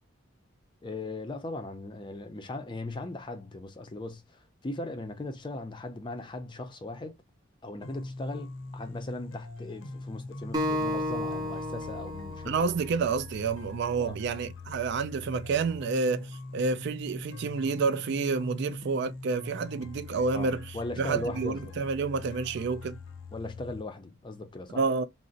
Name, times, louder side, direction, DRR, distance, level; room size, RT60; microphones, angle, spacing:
voice 1, 0.8-7.2 7.6-12.6 14.0-14.2 20.3-21.7 23.3-24.8, left 2 dB, 25° left, 0.4 m, -38 dB
sound 1, 7.8-23.8, left 3 dB, 85° left, 0.6 m, -43 dB
Acoustic guitar, 10.5-13.8, left 1 dB, 20° right, 0.6 m, -33 dB
voice 2, 12.4-23.0 24.7-25.0, right 4 dB, 60° right, 0.3 m, -29 dB
2.5 x 2.0 x 3.8 m
head